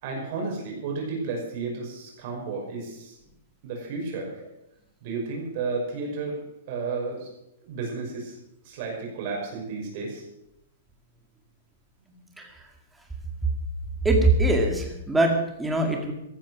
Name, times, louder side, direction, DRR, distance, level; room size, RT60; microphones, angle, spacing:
voice 1, 0.0-3.2 3.6-4.4 5.0-6.4 6.7-7.3 7.7-8.3 8.6-10.2, right 4 dB, 40° right, 0 dB, 5.8 m, -32 dB
voice 2, 14.0-16.1, right 2 dB, 5° right, 2 dB, 2.0 m, -22 dB
14.0 x 12.5 x 6.2 m, 0.84 s
hypercardioid pair, 170°, 0 cm